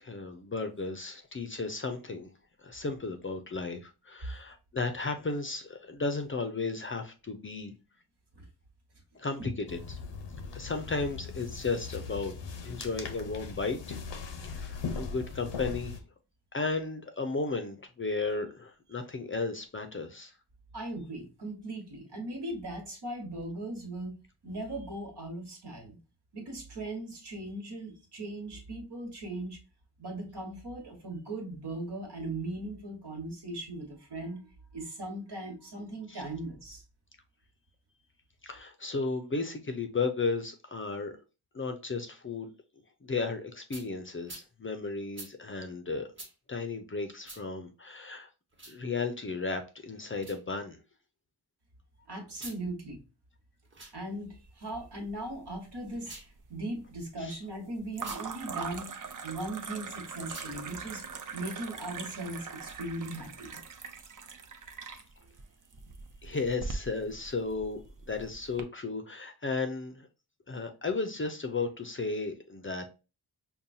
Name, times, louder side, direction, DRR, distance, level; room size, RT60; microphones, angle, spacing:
voice 1, 0.0-2.3 2.6-7.7 9.2-10.0 10.5-12.3 12.6-14.0 14.4-16.0 16.5-20.3 36.1-36.2 38.4-41.1 41.5-42.5 43.0-46.1 46.5-48.3 48.7-50.8 57.2-57.4 66.2-67.8 68.1-70.1 70.5-72.8, left 3 dB, 30° left, 0.5 m, -34 dB
sound 1, 9.7-16.0, left 5 dB, 90° left, 0.7 m, -39 dB
voice 2, 20.7-24.1 24.4-26.0 26.3-29.6 30.0-34.4 34.7-36.8 52.1-53.0 53.9-56.2 56.5-58.9 59.2-61.0 61.3-63.6, right 1 dB, 70° right, 1.3 m, -38 dB
sound 2, 43.7-43.9 44.3-44.5 45.1-45.3 46.2-46.3 47.2-47.4 48.5-48.8 50.2-50.4 52.3-52.6 53.7-54.0 55.9-56.3 58.0-58.2 60.2-60.6, right 2 dB, 30° right, 1.0 m, -46 dB
sound 3, 54.8-55.6 55.8-56.5 57.9-68.6, right 5 dB, 50° right, 0.6 m, -42 dB
5.4 x 2.2 x 2.6 m
wide cardioid pair, 120°, 41 cm